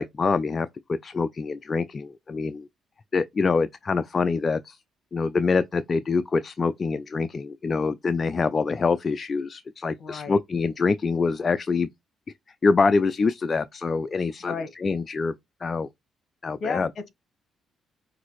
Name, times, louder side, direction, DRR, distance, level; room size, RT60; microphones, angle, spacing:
voice 1, 0.0-2.7 3.1-4.8 5.1-11.9 12.6-15.3 15.6-15.9 16.4-16.9, left 4 dB, 35° left, 0.4 m, -25 dB
voice 2, 10.0-10.4 14.4-14.7 16.6-17.1, left 5 dB, 50° left, 1.1 m, -33 dB
5.9 x 2.7 x 3.0 m
cardioid pair, 90°, 0 cm